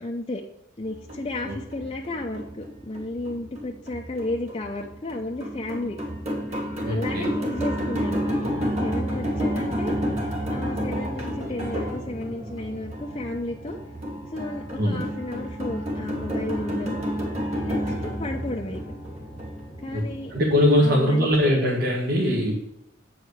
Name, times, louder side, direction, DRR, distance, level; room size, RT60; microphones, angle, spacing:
voice 1, 0.0-0.4 0.8-6.0 6.5-8.2 8.8-9.9 10.5-13.8 14.3-17.0 17.6-18.8 19.8-20.3 20.8-21.3, left 2 dB, 25° left, -1 dB, 0.7 m, -33 dB
sound 1, 0.9-20.7, equal, 35° right, 2.5 m, -30 dB
voice 2, 6.8-7.3 14.8-15.0 19.9-22.5, left 1 dB, 55° right, -4 dB, 1.8 m, -21 dB
8.4 x 4.7 x 6.5 m, 0.81 s
head